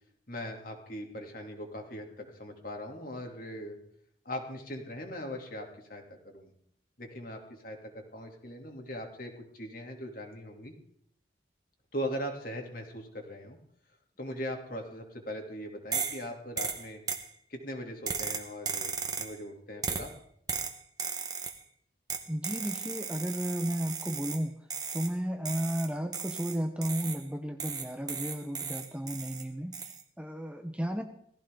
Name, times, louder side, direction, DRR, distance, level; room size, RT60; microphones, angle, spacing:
voice 1, 0.3-3.8 4.2-6.5 7.0-7.8 8.1-10.7 11.9-13.6 14.2-17.0 17.5-20.1, equal, 50° left, 2 dB, 3.0 m, -40 dB
sound 1, 15.9-16.2 16.6-17.3 18.1-19.4 19.8-20.1 20.5-21.6 22.1-24.4 24.7-25.1 25.5-27.2 27.6-29.4 29.7-30.0, right 6 dB, 20° right, 1.2 m, -36 dB
voice 2, 22.3-24.6 24.9-31.0, equal, 5° right, 5 dB, 0.9 m, -34 dB
18.0 x 15.0 x 3.9 m, 0.66 s
head